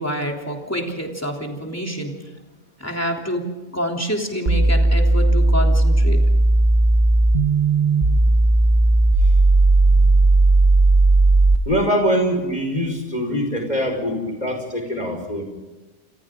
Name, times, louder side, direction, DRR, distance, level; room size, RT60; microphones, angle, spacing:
voice 1, 0.0-2.2 2.8-6.3, equal, 10° left, 1 dB, 3.5 m, -27 dB
sound 1, 4.5-11.6, right 2 dB, 40° right, 1.5 m, -15 dB
voice 2, 11.7-15.4, equal, 35° left, 2 dB, 5.2 m, -23 dB
29.0 x 27.5 x 3.9 m, 1.2 s
omnidirectional pair, 1.3 m